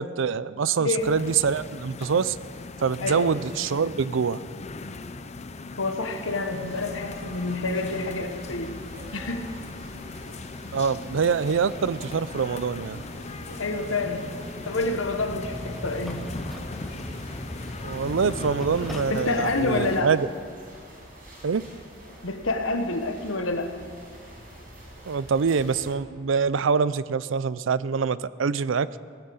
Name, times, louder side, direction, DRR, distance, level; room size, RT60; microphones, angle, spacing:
voice 1, 0.0-2.4 2.8-4.4 10.7-13.0 17.8-20.3 21.4-21.6 25.1-28.9, right 6 dB, 65° right, 17 dB, 0.4 m, -25 dB
voice 2, 0.8-1.1 3.0-3.3 5.8-8.8 9.1-9.6 13.6-14.4 14.6-16.4 19.1-20.2 22.2-23.8, left 3 dB, 75° left, 7 dB, 1.3 m, -28 dB
sound 1, 1.0-20.0, left 3 dB, 35° left, 0.6 m, -39 dB
sound 2, 6.1-25.9, equal, 45° right, 5.4 m, -45 dB
sound 3, 14.3-19.2, equal, ahead, 0.8 m, -40 dB
18.0 x 9.7 x 8.0 m, 2.1 s
head